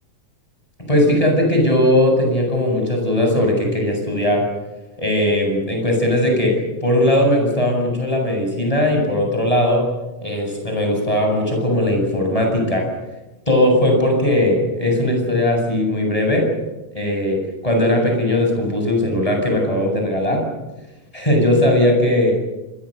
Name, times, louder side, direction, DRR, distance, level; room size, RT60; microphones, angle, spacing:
voice 1, 0.9-4.5 5.0-9.9 10.2-12.9 13.5-16.5 16.9-20.4 21.1-22.3, left 1 dB, 10° left, 1 dB, 7.8 m, -18 dB
27.0 x 22.5 x 6.8 m, 1.0 s
omnidirectional pair, 3.9 m